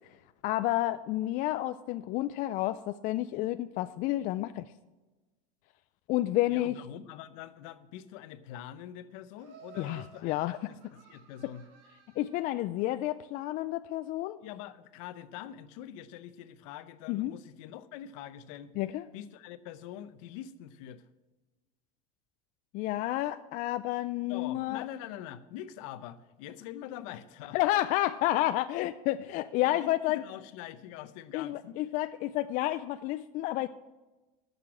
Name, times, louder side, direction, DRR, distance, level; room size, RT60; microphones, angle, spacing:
voice 1, 0.4-4.7 6.1-6.7 9.8-10.6 12.2-14.4 17.1-17.3 18.8-19.1 22.7-24.8 27.5-30.2 31.3-33.7, left 15 dB, 50° left, 11 dB, 0.4 m, -30 dB
voice 2, 6.5-10.4 10.7-11.7 14.4-18.7 19.1-21.1 24.3-27.6 29.6-31.8, left 11 dB, 70° left, 13 dB, 0.8 m, -44 dB
Laughter, 9.4-12.6, right 6 dB, 65° right, 2.5 m, -55 dB
13.0 x 6.7 x 6.1 m, 1.2 s
supercardioid pair, 130°, 18 cm